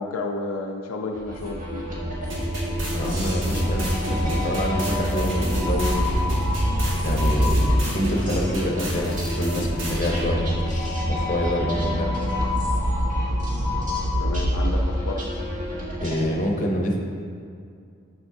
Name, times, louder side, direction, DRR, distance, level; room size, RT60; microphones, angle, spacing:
voice 1, 0.0-1.9 14.2-15.3, left 3 dB, 85° left, 1 dB, 0.5 m, -31 dB
sound 1, 1.1-16.2, equal, 40° right, 1.4 m, -26 dB
sound 2, 2.3-10.3, right 1 dB, 60° right, 1.5 m, -30 dB
voice 2, 2.9-6.4 7.0-7.6 7.9-12.2 16.0-17.0, left 1 dB, 35° left, 1 dB, 0.8 m, -27 dB
7.9 x 6.6 x 2.6 m, 2.3 s
head